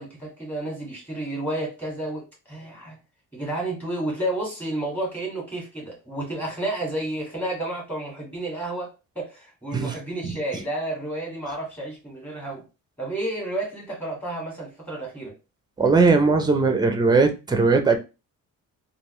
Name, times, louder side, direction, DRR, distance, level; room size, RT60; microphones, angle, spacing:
voice 1, 0.0-3.0 3.3-12.6 13.0-15.3, right 1 dB, 5° left, 1.9 m, -31 dB
voice 2, 15.8-18.0, right 4 dB, 15° right, 0.6 m, -19 dB
3.4 x 2.5 x 3.0 m
cardioid pair, 130°, 33 cm